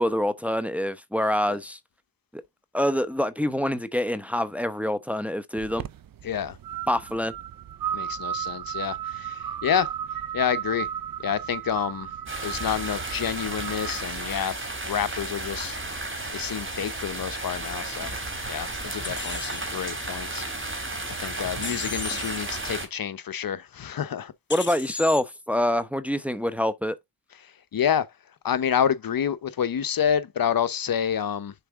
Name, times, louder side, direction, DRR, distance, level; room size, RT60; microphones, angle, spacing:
voice 1, 0.0-1.8 2.3-2.4 2.7-5.8 6.9-7.3 24.5-27.0, left 1 dB, 5° right, 0.8 m, -26 dB
sound 1, 5.6-14.0, right 10 dB, 55° right, 0.7 m, -34 dB
voice 2, 6.2-6.6 7.9-9.9 10.3-10.9 11.2-12.1 12.4-14.6 14.9-16.0 16.3-18.1 18.5-20.4 21.2-24.3 27.4-28.1 28.4-31.5, left 8 dB, 55° left, 0.8 m, -28 dB
sound 2, 12.3-22.9, right 2 dB, 30° right, 3.3 m, -33 dB
sound 3, 19.0-19.7 21.6-22.4 24.5-25.2, left 4 dB, 25° left, 1.1 m, -35 dB
6.8 x 4.4 x 3.5 m
cardioid pair, 60°, 43 cm